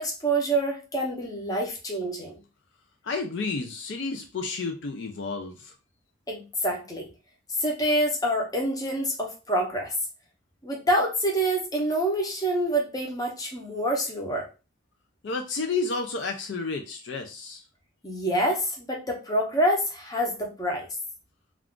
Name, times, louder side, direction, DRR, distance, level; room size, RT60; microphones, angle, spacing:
voice 1, 0.0-2.4 6.3-7.1 7.6-9.9 10.6-14.5 18.0-20.9, right 1 dB, 20° left, 0 dB, 0.7 m, -27 dB
voice 2, 3.0-5.7 15.2-17.6, left 4 dB, 60° left, 4 dB, 0.4 m, -31 dB
2.4 x 2.4 x 3.5 m, 0.31 s
head